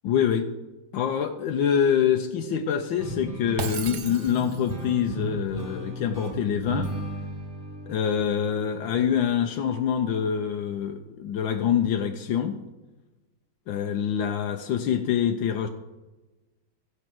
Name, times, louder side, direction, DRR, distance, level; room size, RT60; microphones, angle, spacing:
voice 1, 0.0-0.5 0.9-6.9 7.8-12.6 13.7-15.7, left 8 dB, 85° left, 5 dB, 1.5 m, -25 dB
sound 1, 3.0-9.6, right 2 dB, 30° right, 2.2 m, -36 dB
Shatter, 3.6-4.8, right 6 dB, 60° right, 1.5 m, -35 dB
16.0 x 5.5 x 7.6 m, 1.1 s
omnidirectional pair, 2.0 m